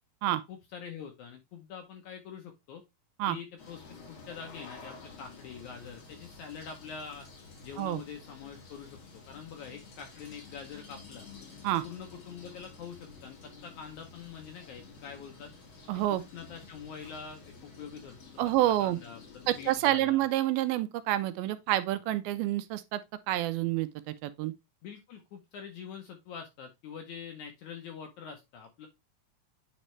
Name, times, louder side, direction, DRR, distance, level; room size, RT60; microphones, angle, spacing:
voice 1, 0.5-2.8 3.3-7.3 7.6-9.0 9.3-11.3 11.8-15.5 16.1-18.2 18.8-20.2 24.8-28.9, left 7 dB, 75° left, 1.8 m, -45 dB
sound 1, 3.6-19.8, left 4 dB, 40° left, 2.2 m, -51 dB
voice 2, 15.9-16.2 18.4-19.0 19.5-23.0 23.3-24.5, right 14 dB, 85° right, 2.4 m, -28 dB
9.1 x 4.1 x 3.1 m
omnidirectional pair, 4.3 m